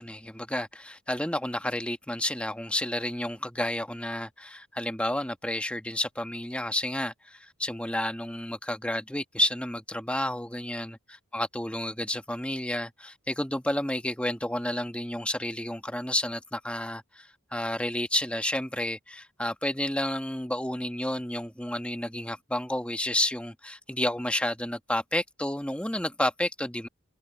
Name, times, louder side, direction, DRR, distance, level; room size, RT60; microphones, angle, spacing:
voice 1, 0.0-11.0 11.3-26.9, left 1 dB, 5° left, 1.2 m, -31 dB
head